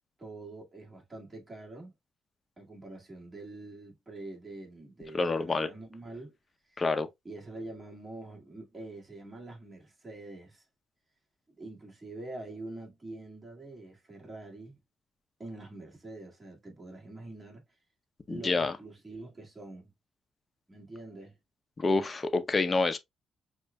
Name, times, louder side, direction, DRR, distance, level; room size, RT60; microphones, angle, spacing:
voice 1, 0.2-1.9 2.6-6.4 6.7-6.8 7.2-10.6 11.5-14.8 15.4-17.6 18.3-19.9 20.7-21.3, right 2 dB, 25° right, 2.1 m, -45 dB
voice 2, 5.1-5.7 6.8-7.1 18.3-18.8 21.8-23.0, left 3 dB, 35° left, 0.8 m, -27 dB
6.0 x 2.6 x 2.3 m
supercardioid pair, 60°, 0 cm